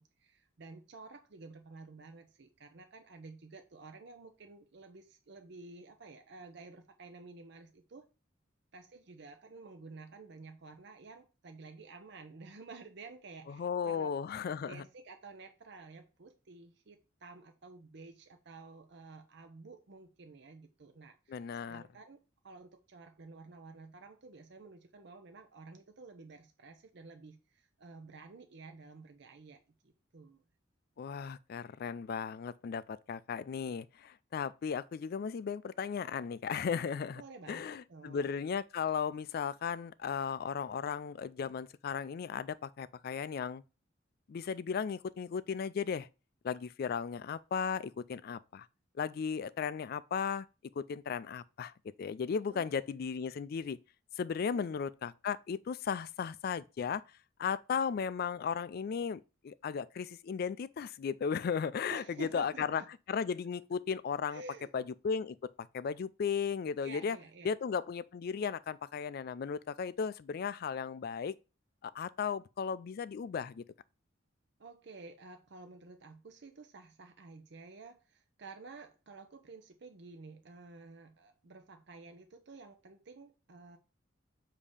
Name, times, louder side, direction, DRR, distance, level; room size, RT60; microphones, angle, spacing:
voice 1, 0.0-8.1 8.7-14.1 14.7-21.4 21.7-29.6 29.8-30.4 37.1-38.3 52.5-52.8 54.4-54.8 61.9-62.9 64.3-64.7 66.8-67.5 74.6-83.8, right 3 dB, 60° right, 0.6 m, -52 dB
voice 2, 13.5-14.8 21.3-21.8 31.0-37.2 37.5-43.6 44.3-46.1 46.4-48.7 49.0-50.5 50.8-51.7 52.0-53.8 54.2-57.0 57.4-62.8 63.1-64.4 64.7-67.2 67.4-71.3 71.8-73.6, left 6 dB, 50° left, 0.3 m, -36 dB
7.1 x 2.8 x 4.9 m
head